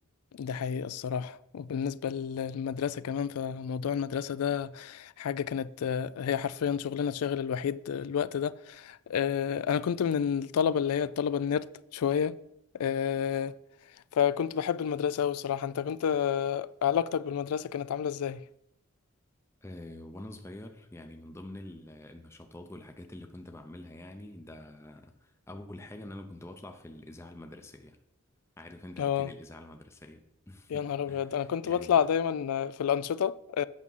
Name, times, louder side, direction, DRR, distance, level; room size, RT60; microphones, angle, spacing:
voice 1, 0.4-11.7 11.9-12.3 12.8-13.6 14.1-18.4 29.0-29.3 30.7-33.6, left 8 dB, 90° left, 0.4 m, -30 dB
voice 2, 19.6-28.0 28.6-32.0, left 1 dB, 10° left, 0.5 m, -46 dB
8.5 x 6.1 x 5.4 m
head